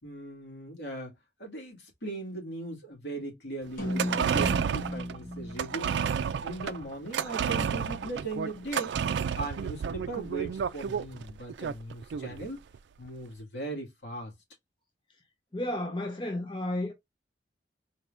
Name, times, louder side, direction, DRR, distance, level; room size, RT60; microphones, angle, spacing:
voice 1, 0.0-6.0 6.4-8.9 9.4-12.6 13.0-14.3, right 2 dB, 75° left, 2.2 m, -39 dB
sound 1, 3.8-8.3, equal, 55° left, 1.5 m, -38 dB
sound 2, 3.8-12.4 12.7-12.8, right 7 dB, 80° right, 0.3 m, -31 dB
voice 2, 15.5-16.9, left 1 dB, 25° left, 0.7 m, -32 dB
4.3 x 3.4 x 2.5 m
head